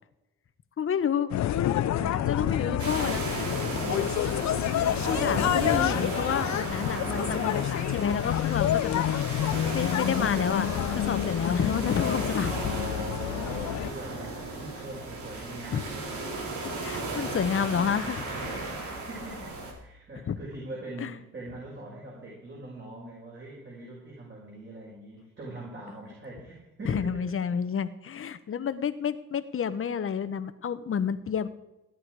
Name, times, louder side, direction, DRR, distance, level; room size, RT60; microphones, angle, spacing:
voice 1, 0.8-1.3 2.2-3.5 5.1-9.1 9.7-12.5 15.7-15.8 16.6-18.2 20.3-20.4 21.0-21.1 26.8-31.5, left 7 dB, 45° left, 12 dB, 1.1 m, -29 dB
sound 1, 1.3-13.9, left 12 dB, 65° left, 0.8 m, -28 dB
voice 2, 1.9-2.9 3.8-4.2 12.5-16.4 18.3-27.3, right 1 dB, 40° right, -4 dB, 5.8 m, -42 dB
sound 2, 2.8-19.7, right 2 dB, 75° right, 3.9 m, -35 dB
16.5 x 11.0 x 4.8 m, 0.96 s
cardioid pair, 90°, 30 cm